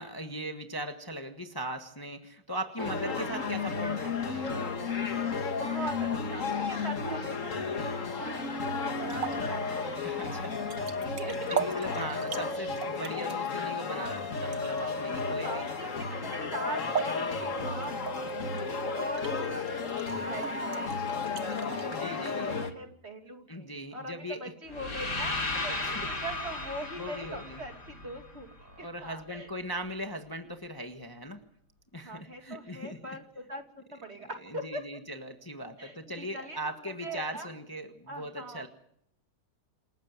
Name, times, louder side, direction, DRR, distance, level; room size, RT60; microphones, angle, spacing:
voice 1, 0.0-4.6 10.0-10.6 11.5-15.7 21.9-22.7 23.5-24.5 25.5-26.1 27.0-27.6 28.6-31.4 31.9-33.0 34.4-38.7, right 1 dB, 15° left, 5 dB, 1.5 m, -39 dB
sound 1, 2.8-22.7, left 4 dB, 50° left, 2.2 m, -33 dB
voice 2, 5.5-8.5 9.0-12.1 12.3-12.5 15.3-25.3 25.6-28.5 28.8-29.5 32.0-33.6 33.9-34.8 35.8-37.5 38.1-38.7, right 1 dB, 40° right, 4 dB, 3.0 m, -42 dB
sound 2, 7.4-21.9, right 7 dB, 60° right, 1.8 m, -41 dB
sound 3, 24.7-28.7, left 2 dB, 90° left, 4.4 m, -35 dB
28.0 x 14.0 x 7.9 m, 0.69 s
omnidirectional pair, 1.7 m